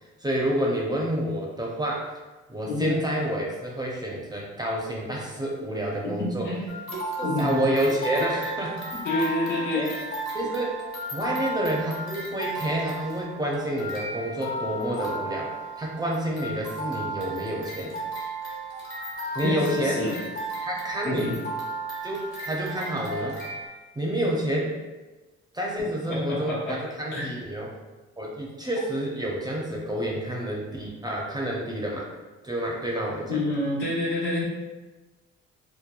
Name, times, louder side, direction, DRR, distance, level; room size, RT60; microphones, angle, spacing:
voice 1, 0.2-2.1 2.5-6.5 7.2-8.8 9.6-9.9 10.3-10.7 11.1-18.0 19.3-20.1 20.6-21.3 22.0-23.4 24.0-24.7 25.5-27.7 28.2-32.1 32.4-33.4, right 1 dB, 15° right, -3 dB, 0.4 m, -29 dB
voice 2, 6.0-6.6 7.2-7.6 9.0-9.9 19.4-20.2 21.0-21.4 26.1-26.8 27.1-27.3 33.3-34.4, left 1 dB, 80° left, -7 dB, 1.0 m, -28 dB
sound 1, 6.7-23.7, right 1 dB, 45° left, 0.9 m, -34 dB
2.8 x 2.2 x 2.2 m, 1.2 s
cardioid pair, 90°, 30 cm